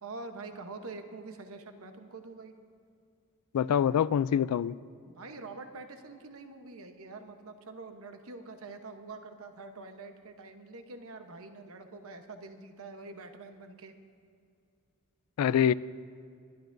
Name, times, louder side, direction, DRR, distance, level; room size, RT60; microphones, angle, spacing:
voice 1, 0.0-2.5 5.1-13.9, right 3 dB, 65° right, 7 dB, 0.9 m, -45 dB
voice 2, 3.5-4.7 15.4-15.7, left 9 dB, 85° left, 19 dB, 0.3 m, -25 dB
28.0 x 12.0 x 2.6 m, 2.4 s
head